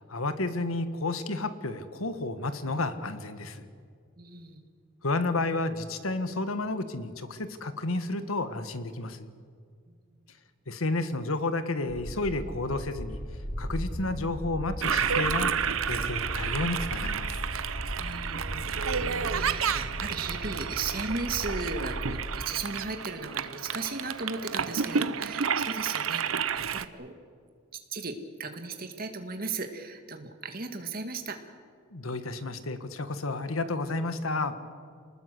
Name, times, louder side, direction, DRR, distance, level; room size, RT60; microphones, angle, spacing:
voice 1, 0.1-3.7 5.0-9.3 10.7-13.2 13.6-17.4 31.9-34.6, left 2 dB, 90° left, 10 dB, 1.6 m, -31 dB
voice 2, 4.2-4.6 18.0-27.1 27.7-31.4, right 4 dB, 45° right, 6 dB, 2.1 m, -36 dB
sound 1, 11.9-22.3, equal, 40° left, 5.2 m, -37 dB
Toilet flush, 14.8-26.8, right 7 dB, 80° right, 0.8 m, -31 dB
27.5 x 20.0 x 7.8 m, 2.1 s
head